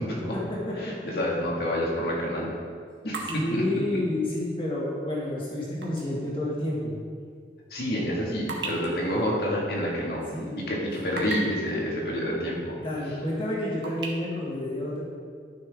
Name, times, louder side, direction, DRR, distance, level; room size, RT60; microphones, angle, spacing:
voice 1, 0.0-0.9 3.3-7.0 10.3-10.5 12.8-15.0, left 1 dB, 30° left, -5 dB, 2.1 m, -30 dB
voice 2, 0.8-2.5 3.0-3.6 7.7-10.2 10.6-12.7, equal, 60° left, -4 dB, 2.1 m, -28 dB
sound 1, 1.0-1.2 1.7-6.1 6.5-6.6 7.2-10.3 10.7-11.7 12.7-12.8 13.2-14.1, right 3 dB, 75° right, 1.5 m, -38 dB
13.0 x 6.2 x 3.8 m, 2.1 s
head